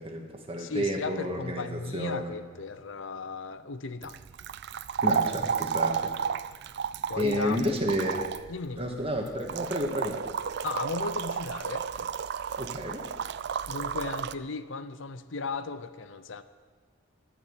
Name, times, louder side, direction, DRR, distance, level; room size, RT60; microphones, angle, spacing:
voice 1, 0.0-2.3 5.0-6.1 7.2-8.2 8.8-10.2 12.6-13.0, equal, 30° right, 2 dB, 1.7 m, -31 dB
voice 2, 0.6-4.2 5.6-5.7 7.1-7.7 8.5-8.9 10.6-11.9 13.7-16.4, left 4 dB, 65° left, 12 dB, 0.7 m, -36 dB
sound 1, 4.0-14.3, right 7 dB, 55° right, 0.4 m, -32 dB
12.0 x 9.8 x 8.6 m, 1.5 s
head